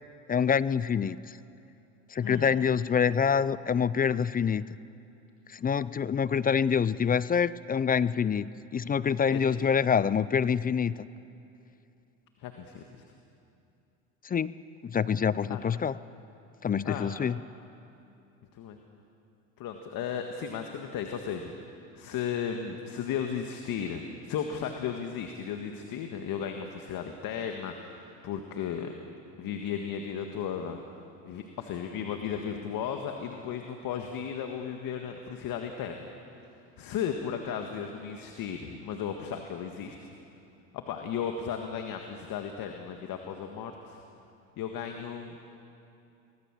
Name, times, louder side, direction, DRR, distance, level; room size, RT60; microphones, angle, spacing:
voice 1, 0.3-1.4 2.1-4.6 5.5-10.9 14.2-14.5 14.8-16.0 16.6-17.4, left 7 dB, 20° left, 18 dB, 0.5 m, -26 dB
voice 2, 2.2-2.9 9.3-9.5 12.4-12.8 15.4-15.6 16.8-17.1 18.5-18.8 19.6-21.5 22.0-28.9 29.4-30.8 31.3-36.1 36.8-40.1 40.7-44.0 44.6-45.3, left 7 dB, 55° left, 4 dB, 1.9 m, -35 dB
24.0 x 19.0 x 7.6 m, 2.7 s
supercardioid pair, 85°, 40 cm